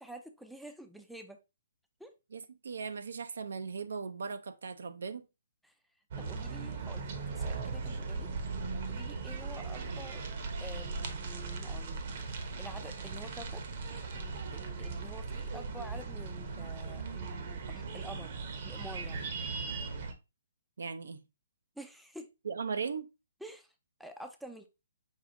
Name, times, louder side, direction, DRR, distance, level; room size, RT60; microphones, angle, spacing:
voice 1, 0.0-1.4 2.0-2.1 5.6-5.7 6.2-8.3 8.9-10.2 10.6-13.6 14.1-18.4 18.6-19.2 21.8-22.3 23.4-23.7 24.0-24.7, equal, ahead, 0.5 m, -48 dB
voice 2, 2.3-5.2 9.9-10.0 20.8-21.2 22.4-23.1, right 5 dB, 80° right, 0.6 m, -38 dB
sound 1, 6.1-20.1, right 4 dB, 50° right, 0.9 m, -38 dB
5.5 x 2.4 x 3.8 m
hypercardioid pair, 150°, 0 cm